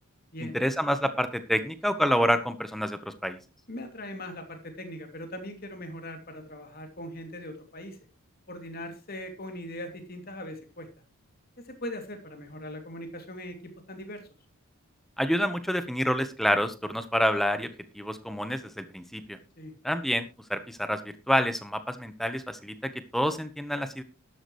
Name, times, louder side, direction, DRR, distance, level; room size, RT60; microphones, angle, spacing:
voice 1, 0.4-3.4 15.2-19.4 19.8-24.0, equal, ahead, 10 dB, 1.1 m, -28 dB
voice 2, 3.7-8.0 8.5-10.9 11.6-14.2 19.6-19.7, left 1 dB, 40° left, 5 dB, 2.8 m, -40 dB
12.5 x 12.0 x 3.2 m, 0.30 s
head